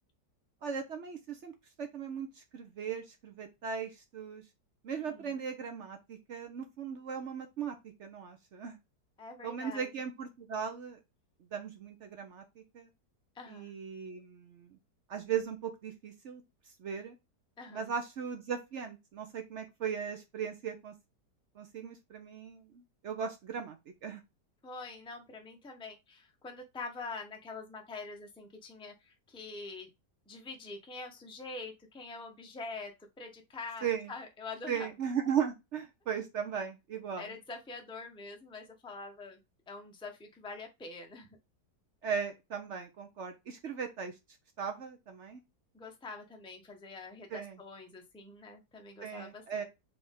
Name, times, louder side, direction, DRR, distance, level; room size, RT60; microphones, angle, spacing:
voice 1, 0.6-4.4 4.8-8.8 9.4-11.0 11.5-12.9 13.5-14.8 15.1-16.4 16.8-17.2 17.7-20.9 21.6-23.8 24.0-24.2 33.8-34.1 34.7-37.3 42.0-44.1 44.6-45.4 47.3-47.6 49.0-49.6, right 7 dB, 65° right, 6 dB, 0.7 m, -37 dB
voice 2, 4.9-5.4 9.2-9.9 13.3-13.7 17.6-17.9 24.6-29.9 30.3-32.9 33.2-34.9 37.2-39.4 39.7-41.4 45.7-49.6, left 3 dB, 5° left, 3 dB, 0.4 m, -45 dB
3.9 x 3.5 x 3.5 m, 0.23 s
omnidirectional pair, 1.9 m